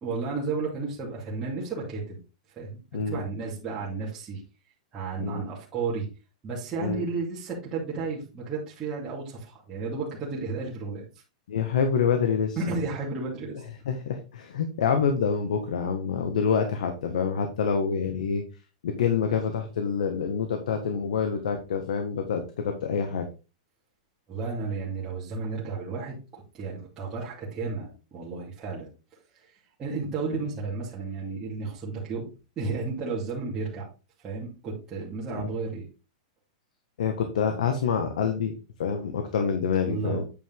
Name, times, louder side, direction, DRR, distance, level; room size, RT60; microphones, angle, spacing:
voice 1, 0.0-2.2 2.5-4.4 4.9-6.1 6.4-11.0 12.6-13.6 18.0-18.1 24.3-28.9 29.3-29.5 29.8-32.3 32.6-33.9 34.2-35.9 39.9-40.2, right 4 dB, 20° right, -7 dB, 2.3 m, -33 dB
voice 2, 2.9-3.2 5.2-5.4 6.8-7.1 11.5-12.6 13.8-18.4 18.8-23.2 35.4-35.5 37.0-38.5 38.8-40.2, left 6 dB, 80° left, 5 dB, 1.6 m, -26 dB
9.0 x 5.1 x 3.8 m, 0.31 s
supercardioid pair, 165°, 4 cm